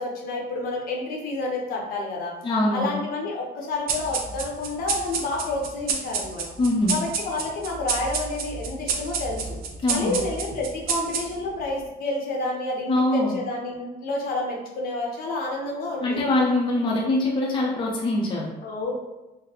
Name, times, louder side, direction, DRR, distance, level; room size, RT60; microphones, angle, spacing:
voice 1, 0.0-2.3 2.7-6.4 6.9-9.5 9.9-16.3 18.6-18.9, left 2 dB, 60° left, -1 dB, 0.9 m, -29 dB
voice 2, 2.4-2.9 6.6-6.9 9.8-10.1 12.9-13.4 16.0-18.5, left 2 dB, 30° left, -3 dB, 0.6 m, -23 dB
sound 1, 3.9-11.6, right 5 dB, 65° right, 0.5 m, -30 dB
3.9 x 2.1 x 2.9 m, 1.0 s
cardioid pair, 110°, 17 cm